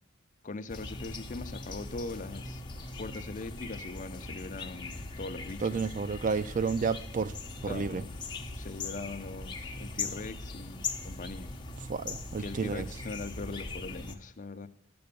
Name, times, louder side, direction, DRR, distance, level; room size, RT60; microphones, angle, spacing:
voice 1, 0.4-2.6 3.0-5.9 7.7-8.1 8.5-11.5 12.4-14.7, left 3 dB, 40° left, 0.6 m, -41 dB
sound 1, 0.7-14.1, left 3 dB, 25° left, 1.0 m, -40 dB
voice 2, 5.6-7.3 7.6-8.0 11.9-12.9, right 5 dB, 40° right, 0.4 m, -31 dB
11.5 x 7.9 x 6.8 m
head